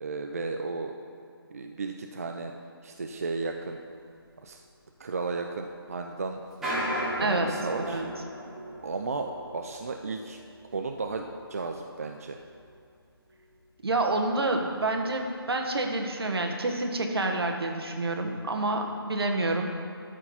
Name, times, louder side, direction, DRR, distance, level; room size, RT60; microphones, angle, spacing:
voice 1, 0.0-0.9 1.5-2.5 2.8-3.8 4.4-4.6 5.0-6.8 7.2-8.0 8.8-10.4 10.7-12.4, right 3 dB, 35° right, 4 dB, 0.4 m, -34 dB
sound 1, 3.1-3.3 3.6-3.7 4.4-4.5 5.2-5.5 6.4-12.7 13.3-13.5 13.8-13.9 14.4-14.5 15.0-15.1, equal, 5° right, 0.8 m, -37 dB
voice 2, 7.2-7.5 7.8-8.1 13.8-19.7, right 2 dB, 75° right, 3 dB, 1.3 m, -28 dB
12.0 x 4.5 x 5.6 m, 2.4 s
figure-of-eight pair, 170°, 13 cm